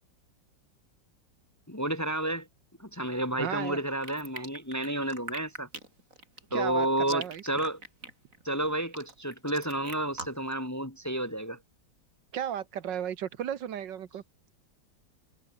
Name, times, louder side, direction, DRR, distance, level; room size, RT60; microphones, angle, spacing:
voice 1, 1.7-2.5 2.8-5.7 6.5-7.8 8.4-11.6, right 1 dB, 10° left, 1.3 m, -31 dB
voice 2, 3.4-3.8 6.5-7.4 12.3-14.2, right 9 dB, 75° right, 1.8 m, -34 dB
sound 1, 4.0-10.5, right 2 dB, 45° right, 5.6 m, -42 dB
omnidirectional pair, 2.0 m